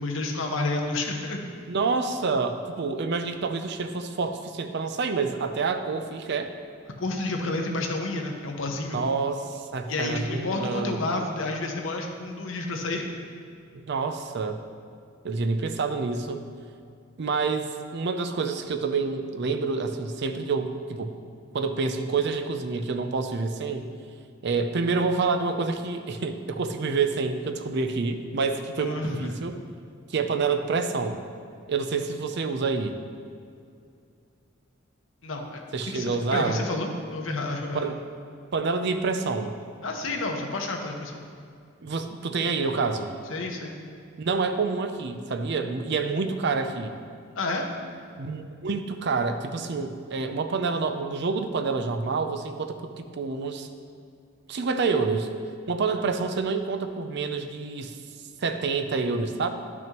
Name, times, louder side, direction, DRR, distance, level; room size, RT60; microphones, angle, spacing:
voice 1, 0.0-1.4 7.0-9.0 9.9-13.2 28.8-29.3 35.2-37.9 39.8-41.2 43.3-43.7 47.4-47.7, left 2 dB, 70° left, 2 dB, 0.9 m, -30 dB
voice 2, 1.7-6.5 8.9-11.0 13.9-14.6 15.2-16.4 17.2-21.1 21.5-23.9 24.4-29.6 30.1-31.2 31.7-32.9 35.7-36.6 37.7-38.0 38.5-39.5 41.8-43.1 44.2-46.9 48.2-53.7 54.5-55.3 55.7-58.0 58.4-59.5, right 4 dB, 55° right, 7 dB, 0.5 m, -28 dB
10.5 x 6.0 x 3.0 m, 2.4 s
head